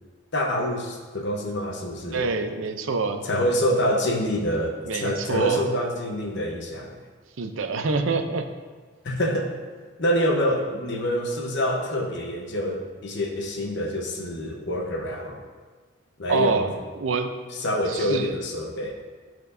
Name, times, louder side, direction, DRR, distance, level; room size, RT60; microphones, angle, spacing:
voice 1, 0.3-2.3 3.2-7.0 9.0-9.5 10.0-15.4 16.2-16.7 17.6-18.9, equal, 60° left, 1 dB, 1.0 m, -26 dB
voice 2, 2.1-3.2 4.8-5.6 7.4-8.5 16.3-17.3 17.9-18.4, right 4 dB, 75° right, 7 dB, 0.6 m, -26 dB
12.0 x 4.5 x 2.7 m, 1.5 s
head